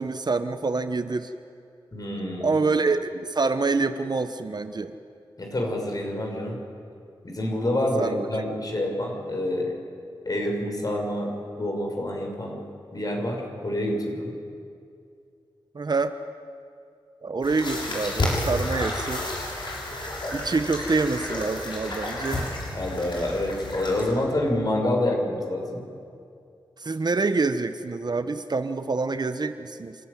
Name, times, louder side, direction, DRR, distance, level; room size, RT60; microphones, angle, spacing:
voice 1, 0.0-1.3 2.4-4.9 8.0-8.3 15.7-16.2 17.2-19.3 20.3-22.4 26.8-30.0, right 3 dB, 50° right, 10 dB, 1.1 m, -26 dB
voice 2, 1.9-2.6 5.4-6.6 7.2-9.7 10.3-12.6 12.9-14.3 22.7-25.8, left 1 dB, 45° left, 1 dB, 5.9 m, -27 dB
sound 1, 17.4-24.1, left 1 dB, 65° left, 6.8 m, -31 dB
28.0 x 14.0 x 9.8 m, 2.5 s
cardioid pair, 60°, 9 cm